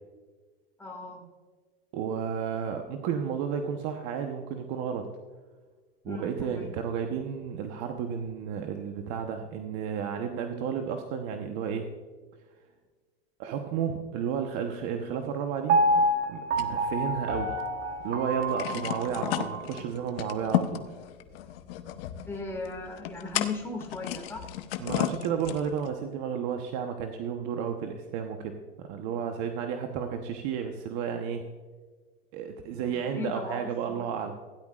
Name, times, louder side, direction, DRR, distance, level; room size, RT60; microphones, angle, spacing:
voice 1, 0.8-1.2 6.0-6.7 19.2-19.5 22.3-24.5 29.2-29.4 32.7-34.2, left 3 dB, 10° left, -1 dB, 2.0 m, -38 dB
voice 2, 1.9-5.1 6.0-11.9 13.4-17.5 18.0-20.8 24.8-31.5 32.3-34.4, right 7 dB, 55° right, 5 dB, 1.1 m, -32 dB
Piano, 15.7-19.8 20.3-20.4, right 1 dB, 35° right, 1.2 m, -27 dB
sound 1, 16.6-17.7 18.0-18.1 18.4-25.9, left 12 dB, 70° left, 0.9 m, -34 dB
16.0 x 10.5 x 2.4 m, 1.4 s
supercardioid pair, 115°, 30 cm